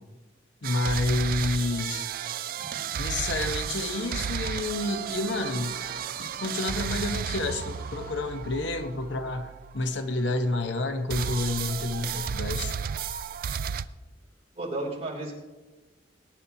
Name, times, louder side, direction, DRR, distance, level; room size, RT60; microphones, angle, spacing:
voice 1, 0.6-2.0 2.9-5.8 6.2-12.7, left 2 dB, 70° left, 7 dB, 0.9 m, -29 dB
sound 1, 0.6-10.6 11.1-13.9, right 7 dB, 50° right, 0.3 m, -33 dB
sound 2, 3.2-8.5, right 1 dB, 15° right, 4.4 m, -49 dB
voice 2, 14.6-15.3, right 2 dB, 35° right, -2 dB, 3.0 m, -33 dB
21.5 x 9.5 x 2.8 m, 1.2 s
head